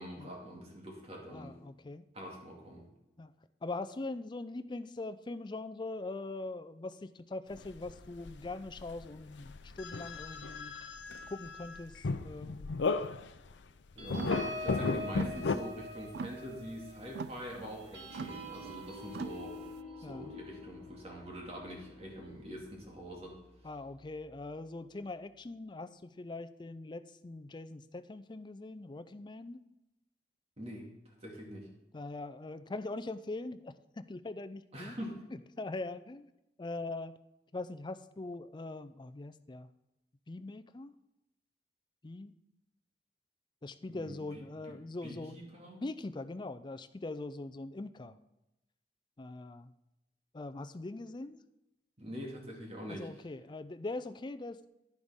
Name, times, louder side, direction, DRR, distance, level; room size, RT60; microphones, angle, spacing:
voice 1, 0.0-1.6 2.1-2.9 14.0-19.6 20.0-23.4 30.6-31.7 34.7-35.2 43.9-45.8 52.0-53.1, equal, 35° right, -1 dB, 2.4 m, -45 dB
voice 2, 1.3-2.0 3.2-3.3 3.6-10.8 11.3-12.7 20.0-20.3 23.6-29.6 31.9-34.9 35.6-36.3 36.6-37.1 37.5-39.7 40.3-40.9 42.0-42.3 43.6-45.4 45.8-48.2 49.2-49.7 50.3-51.4 52.9-54.7, left 2 dB, 25° left, 11 dB, 0.4 m, -42 dB
sound 1, 7.5-9.1 9.4-13.5 14.0-15.6, left 4 dB, 85° left, 0.5 m, -35 dB
sound 2, 14.0-22.9 23.3-23.5 23.8-24.1, left 1 dB, 85° right, 2.2 m, -45 dB
Clock ticks close to mic, 14.1-19.8, right 5 dB, 65° right, 0.4 m, -44 dB
10.5 x 10.5 x 3.6 m, 0.93 s
head